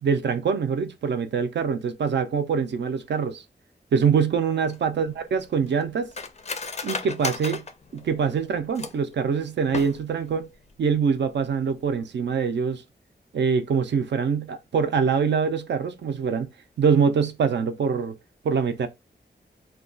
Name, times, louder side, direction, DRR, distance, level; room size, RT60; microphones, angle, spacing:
voice 1, 0.0-3.4 3.9-6.1 6.8-7.6 7.9-10.5 10.8-12.8 13.3-16.5 16.8-18.2 18.4-18.9, right 6 dB, 75° right, 0.5 m, -24 dB
Cutlery silverware, 4.7-9.1 9.6-10.3 10.6-10.7 11.1-11.4 11.7-11.9, left 4 dB, 35° left, 0.4 m, -35 dB
2.3 x 2.3 x 3.7 m
wide cardioid pair, 160°, 18 cm